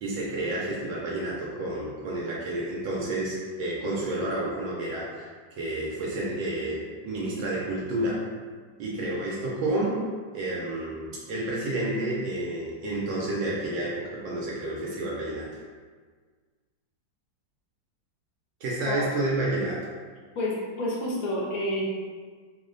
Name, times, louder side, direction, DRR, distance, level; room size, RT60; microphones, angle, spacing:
voice 1, 0.0-5.3 5.6-8.2 8.8-10.0 10.3-15.5 18.6-19.8, right 1 dB, 85° right, -5 dB, 1.4 m, -30 dB
voice 2, 20.3-21.9, left 1 dB, 70° left, -4 dB, 0.9 m, -29 dB
3.2 x 2.1 x 3.7 m, 1.5 s
omnidirectional pair, 2.0 m